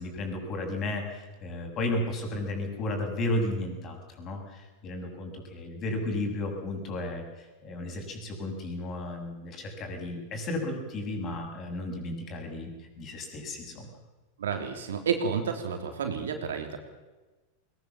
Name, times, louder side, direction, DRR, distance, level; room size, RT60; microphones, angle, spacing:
voice 1, 0.0-13.9, left 1 dB, 35° left, 3 dB, 7.7 m, -34 dB
voice 2, 14.4-16.8, right 6 dB, 75° right, 5 dB, 3.6 m, -30 dB
21.5 x 20.5 x 7.4 m, 1.2 s
hypercardioid pair, 95°, 0 cm